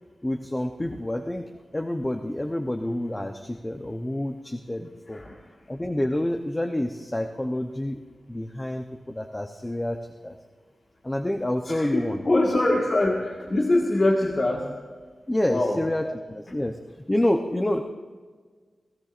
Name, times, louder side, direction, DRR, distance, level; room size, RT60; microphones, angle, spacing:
voice 1, 0.2-5.2 5.7-8.0 8.3-10.4 11.0-12.2 15.3-17.8, left 1 dB, 15° left, 4 dB, 0.7 m, -28 dB
voice 2, 11.7-14.7 15.5-15.8, left 2 dB, 35° left, -1 dB, 1.6 m, -23 dB
30.0 x 18.5 x 2.5 m, 1.5 s
wide cardioid pair, 165°, 0 cm